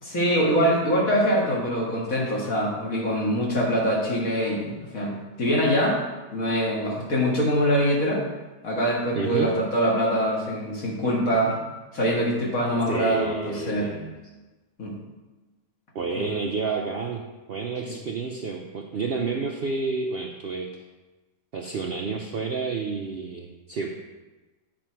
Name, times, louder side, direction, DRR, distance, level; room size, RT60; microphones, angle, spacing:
voice 1, 0.0-6.0 6.3-8.2 8.6-11.6 11.9-13.9 14.8-14.9 16.2-16.3, equal, 55° left, -3 dB, 2.1 m, -24 dB
voice 2, 9.1-9.5 12.9-14.1 15.9-17.2 17.5-20.7 21.5-24.0, right 4 dB, 85° right, 1 dB, 0.5 m, -30 dB
8.9 x 5.1 x 4.5 m, 1.2 s
omnidirectional pair, 1.8 m